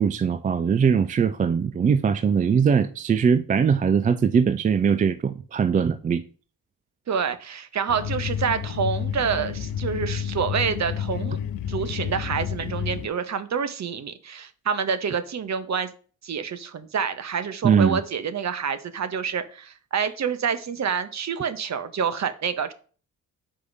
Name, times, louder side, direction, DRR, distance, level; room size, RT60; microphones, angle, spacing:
voice 1, 0.0-6.2 17.6-18.0, right 6 dB, 20° right, 0.3 m, -21 dB
voice 2, 7.1-11.4 11.7-15.9 16.2-22.7, right 6 dB, 40° right, 0.9 m, -27 dB
sound 1, 7.9-13.1, left 9 dB, 50° left, 0.7 m, -30 dB
8.0 x 4.7 x 2.7 m
hypercardioid pair, 45°, 44 cm